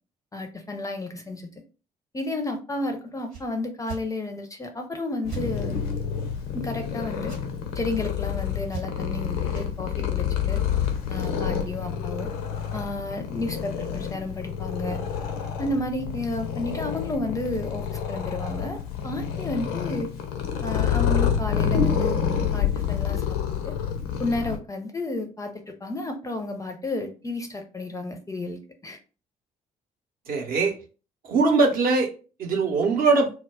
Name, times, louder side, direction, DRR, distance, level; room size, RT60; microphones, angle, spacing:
voice 1, 0.3-1.5 2.1-5.8 6.5-7.3 7.7-10.6 11.1-12.3 12.7-15.0 15.6-20.1 20.6-22.2 22.5-23.4 23.6-23.7 24.2-29.0, left 2 dB, 15° left, 0.4 m, -32 dB
sound 1, 3.3-3.5 3.8-4.0 5.3-5.5 7.2-7.4 8.7-9.1 9.5-9.7, right 6 dB, 75° right, 0.9 m, -37 dB
Purr, 5.2-24.6, left 7 dB, 70° left, 0.4 m, -28 dB
voice 2, 30.3-30.7 31.2-32.1 32.4-33.3, right 3 dB, 50° right, 0.7 m, -21 dB
2.1 x 2.1 x 3.4 m
figure-of-eight pair, 45°, 19 cm